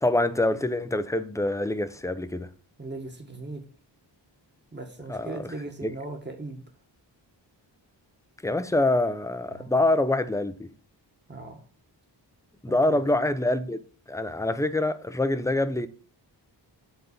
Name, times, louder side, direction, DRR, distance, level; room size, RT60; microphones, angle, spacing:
voice 1, 0.0-2.5 5.1-5.4 5.8-5.9 8.4-10.7 12.6-13.8 14.1-15.9, left 2 dB, 5° left, 0.6 m, -25 dB
voice 2, 2.8-3.6 4.7-6.6 9.5-9.7 11.3-11.6 12.7-13.0, right 2 dB, 25° right, 1.6 m, -38 dB
7.9 x 4.1 x 6.6 m
wide cardioid pair, 105°, 45 cm